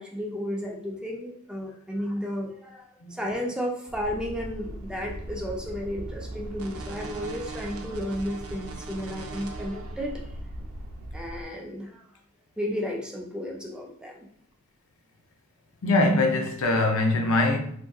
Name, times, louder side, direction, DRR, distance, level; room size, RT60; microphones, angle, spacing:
voice 1, 0.0-10.2 11.1-12.0 12.6-14.3, equal, 5° right, 0.4 m, -33 dB
sound 1, 3.9-11.4, right 1 dB, 75° right, 0.5 m, -38 dB
voice 2, 15.8-17.6, left 2 dB, 70° left, 0.5 m, -22 dB
3.5 x 2.7 x 2.3 m
head